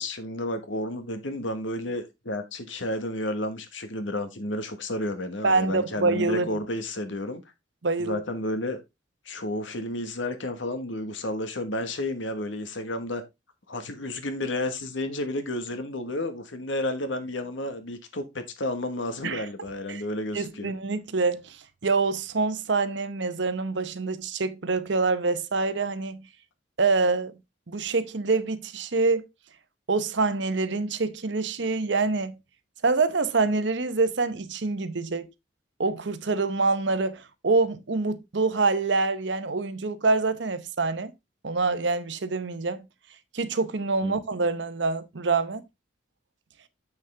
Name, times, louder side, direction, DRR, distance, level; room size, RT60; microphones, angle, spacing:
voice 1, 0.0-7.4 8.0-8.8 9.2-13.2 13.7-20.7 44.0-44.2, left 1 dB, 75° left, 1.4 m, -31 dB
voice 2, 5.4-6.6 7.8-8.2 19.2-19.4 19.9-20.0 20.3-21.6 21.8-26.2 26.8-27.3 27.7-29.3 29.9-32.4 32.8-35.3 35.8-41.1 41.4-42.8 43.3-45.6, right 3 dB, 65° right, 0.8 m, -26 dB
7.2 x 6.5 x 3.3 m
head